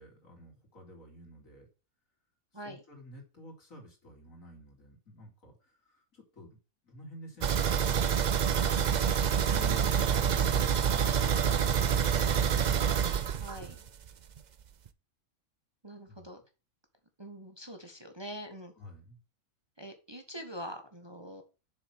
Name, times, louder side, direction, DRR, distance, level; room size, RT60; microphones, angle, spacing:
voice 1, 0.0-1.7 2.5-6.6 6.8-9.0 13.5-13.9 16.1-16.3 18.8-19.2, equal, 70° left, 1 dB, 4.0 m, -52 dB
sound 1, 7.4-14.1 14.4-14.5 14.9-15.0, right 7 dB, 50° right, 0.5 m, -27 dB
voice 2, 9.5-10.4 13.4-13.8 15.8-16.4 17.2-18.7 19.8-21.4, equal, 20° right, 6 dB, 1.3 m, -44 dB
7.3 x 6.7 x 6.2 m, 0.33 s
omnidirectional pair, 1.4 m